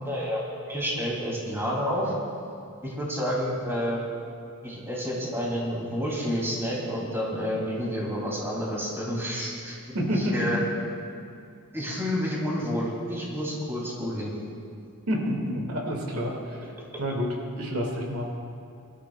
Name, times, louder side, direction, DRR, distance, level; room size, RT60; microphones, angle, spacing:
voice 1, 0.0-2.1 2.8-4.0 4.6-9.8 10.2-10.6 11.7-14.3, equal, 10° right, -5 dB, 3.0 m, -29 dB
voice 2, 9.9-10.5 15.1-16.7 17.0-18.3, equal, 80° right, -1 dB, 2.4 m, -28 dB
25.0 x 13.0 x 2.4 m, 2.5 s
head